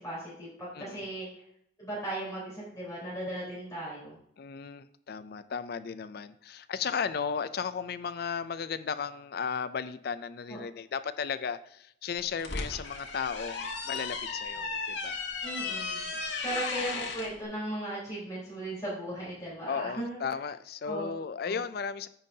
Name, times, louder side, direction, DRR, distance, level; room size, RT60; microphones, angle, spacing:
voice 1, 0.0-1.4 1.8-4.2 10.5-10.6 14.5-14.8 15.4-16.0 16.4-20.2 20.8-21.1 21.4-21.5, right 1 dB, 20° left, -9 dB, 3.9 m, -37 dB
voice 2, 4.4-15.2 16.1-16.2 19.7-22.1, left 6 dB, 55° left, 13 dB, 0.4 m, -35 dB
sound 1, 12.2-17.3, left 4 dB, 75° left, 1.4 m, -35 dB
14.0 x 5.4 x 2.8 m, 0.69 s
head